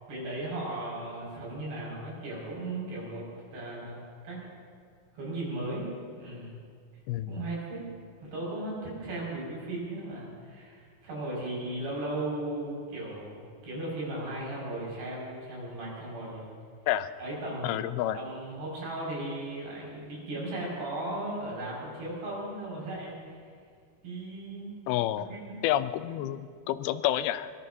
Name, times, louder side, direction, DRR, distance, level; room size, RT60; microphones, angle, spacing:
voice 1, 0.1-3.2 3.5-4.5 5.1-6.5 7.3-7.8 8.2-16.5 17.2-17.9 18.1-23.4 24.0-24.8 25.2-25.6 26.1-26.2, right 1 dB, 90° right, -5 dB, 7.8 m, -36 dB
voice 2, 7.1-7.4 16.9-17.1 17.6-18.2 24.9-25.3 25.6-27.5, left 12 dB, 85° left, 13 dB, 2.5 m, -29 dB
23.5 x 22.0 x 2.8 m, 2.2 s
omnidirectional pair, 4.4 m